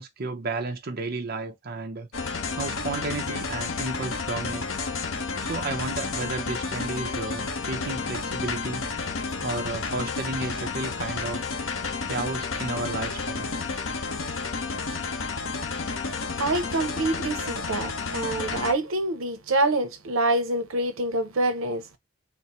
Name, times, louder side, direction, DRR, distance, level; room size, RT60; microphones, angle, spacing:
voice 1, 0.0-2.1 2.6-4.6 5.4-8.9 9.4-11.4 12.1-13.5, right 3 dB, 50° right, 0.7 m, -32 dB
sound 1, 2.1-18.7, left 4 dB, 70° left, 0.8 m, -31 dB
voice 2, 16.4-21.8, right 2 dB, 85° right, 0.8 m, -26 dB
4.2 x 2.1 x 4.2 m
head